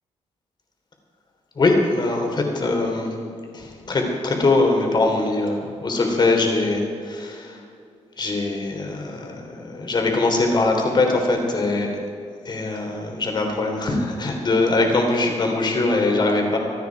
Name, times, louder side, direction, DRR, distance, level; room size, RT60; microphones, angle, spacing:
voice 1, 1.5-3.2 3.5-7.6 8.2-11.9 12.4-16.6, left 2 dB, 40° left, 2 dB, 3.3 m, -22 dB
26.5 x 9.4 x 4.7 m, 2.4 s
cardioid pair, 120°, 12 cm